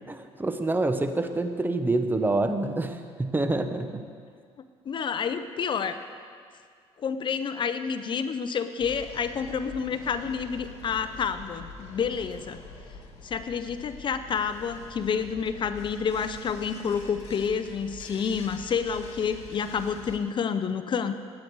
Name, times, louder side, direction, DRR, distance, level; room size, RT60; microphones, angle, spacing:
voice 1, 0.1-4.0, right 2 dB, 15° right, 8 dB, 0.9 m, -27 dB
voice 2, 4.9-6.0 7.0-12.6 13.2-21.1, left 6 dB, 45° left, 11 dB, 0.7 m, -29 dB
sound 1, 8.8-20.2, left 4 dB, 70° left, 2.0 m, -45 dB
19.0 x 8.7 x 4.7 m, 2.1 s
cardioid pair, 95°, 12 cm